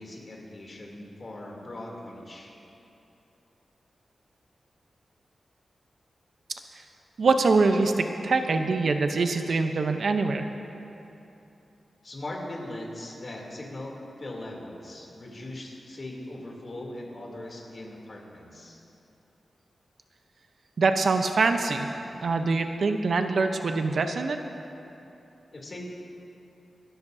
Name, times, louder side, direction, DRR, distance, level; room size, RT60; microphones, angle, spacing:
voice 1, 0.0-2.5 12.0-18.8 25.5-25.8, left 1 dB, 45° left, -2 dB, 2.9 m, -40 dB
voice 2, 7.2-10.4 20.8-21.9 22.2-24.4, right 3 dB, 65° right, 6 dB, 0.7 m, -24 dB
26.5 x 13.0 x 2.7 m, 2.9 s
wide cardioid pair, 105°, 0 cm